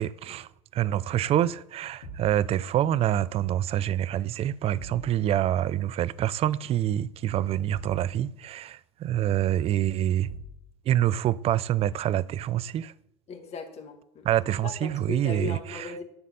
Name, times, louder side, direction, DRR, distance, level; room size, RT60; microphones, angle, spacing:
voice 1, 0.0-10.3 10.9-12.9 14.2-15.9, right 12 dB, 40° right, 0.4 m, -26 dB
sound 1, 2.0-2.4 4.8-5.1 7.7-8.1 10.2-10.6, right 1 dB, 85° left, 2.2 m, -42 dB
voice 2, 13.3-14.3 14.6-16.0, left 5 dB, 40° left, 1.8 m, -37 dB
10.5 x 4.1 x 5.5 m
hypercardioid pair, 75°, 16 cm